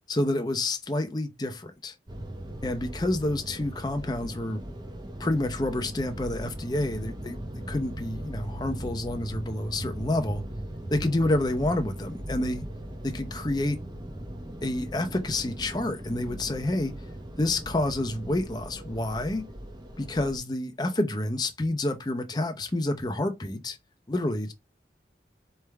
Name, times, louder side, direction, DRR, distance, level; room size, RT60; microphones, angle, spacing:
voice 1, 0.1-1.9 2.6-4.6 5.2-7.4 7.7-10.4 10.9-12.6 13.0-13.8 14.6-17.0 17.4-19.5 20.0-23.8 24.1-24.5, left 1 dB, 25° left, 0.7 m, -28 dB
sound 1, 2.1-20.4, right 1 dB, 25° right, 0.8 m, -39 dB
4.4 x 3.5 x 3.4 m
head